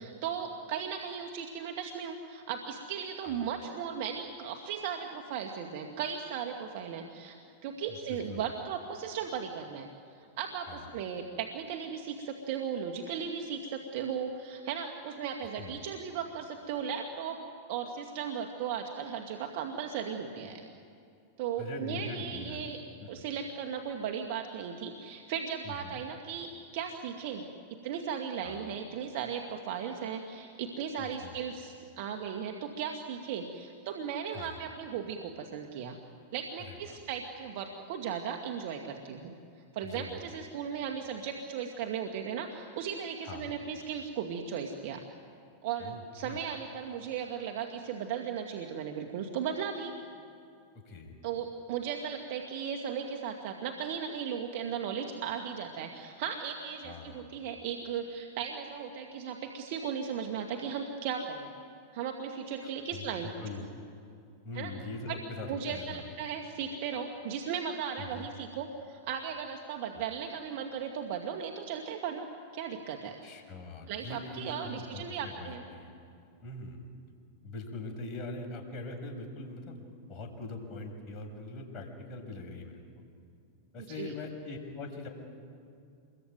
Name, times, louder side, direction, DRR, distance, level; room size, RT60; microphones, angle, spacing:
voice 1, 0.0-7.4 7.6-9.9 10.4-17.4 17.7-20.6 21.4-22.8 23.1-27.4 27.7-36.0 36.3-39.4 39.7-45.0 45.6-49.9 51.2-61.5 61.9-63.3 64.5-64.7 65.1-65.2 65.5-72.3 72.5-73.2 73.9-75.6 83.9-84.1, right 7 dB, 60° right, 4 dB, 2.1 m, -36 dB
voice 2, 7.9-8.5 10.7-10.9 15.6-15.9 21.6-22.6 23.0-23.3 25.6-26.0 28.4-28.6 31.0-31.4 34.3-34.6 36.6-37.0 39.8-40.3 43.2-43.5 45.8-46.4 50.7-51.1 56.8-57.3 62.6-63.7 64.4-66.1 68.1-68.3 69.9-70.0 73.2-75.9 76.4-76.8 77.4-79.8 80.1-83.0 83.7-85.1, left 2 dB, 35° left, 2 dB, 6.6 m, -42 dB
27.5 x 22.5 x 9.5 m, 2.5 s
hypercardioid pair, 110°, 0 cm